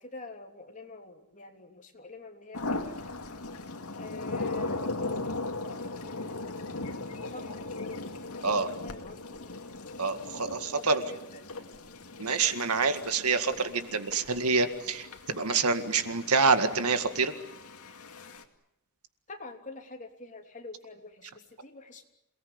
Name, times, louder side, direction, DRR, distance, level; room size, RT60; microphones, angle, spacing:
voice 1, 0.0-3.0 3.9-4.8 5.9-6.6 7.2-7.6 8.3-9.4 10.8-11.8 19.3-22.2, left 3 dB, 35° left, 3 dB, 3.3 m, -46 dB
sound 1, 2.5-18.4, left 2 dB, 75° left, 2.3 m, -38 dB
voice 2, 10.0-11.0 12.2-17.3, right 4 dB, 80° right, 9 dB, 2.0 m, -27 dB
28.0 x 19.0 x 9.7 m, 0.85 s
head